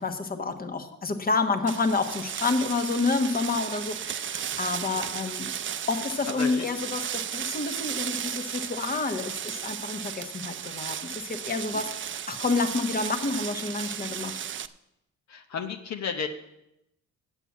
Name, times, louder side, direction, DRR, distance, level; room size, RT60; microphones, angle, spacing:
voice 1, 0.0-5.5 5.9-14.4, left 3 dB, 30° left, 8 dB, 1.2 m, -29 dB
sound 1, 1.7-14.7, right 9 dB, 40° right, 0.5 m, -35 dB
voice 2, 6.3-6.6 15.3-16.3, left 6 dB, 65° left, 4 dB, 0.9 m, -33 dB
8.2 x 7.4 x 8.3 m, 0.86 s
cardioid pair, 90°, 30 cm